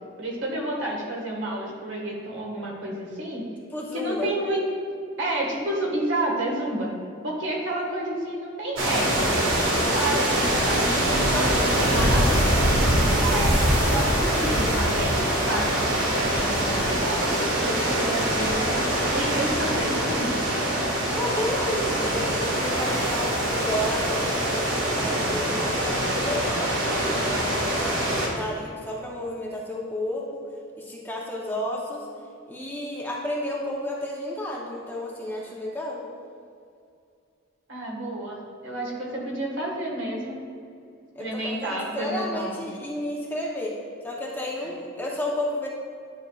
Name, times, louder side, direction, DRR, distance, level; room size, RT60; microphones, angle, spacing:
voice 1, 0.2-3.4 3.9-4.6 5.2-6.9 7.2-12.4 13.2-17.3 17.6-20.3 37.7-40.3 41.2-42.6, right 1 dB, 65° right, -2 dB, 1.6 m, -30 dB
voice 2, 3.7-4.3 11.3-12.1 21.1-26.4 26.8-27.5 27.7-30.4 30.8-32.1 32.5-36.0 41.1-43.7 44.0-45.7, left 1 dB, 10° left, -3 dB, 0.8 m, -32 dB
sound 1, 8.8-28.3, right 1 dB, 80° right, 1.7 m, -24 dB
10.5 x 6.3 x 2.4 m, 2.4 s
head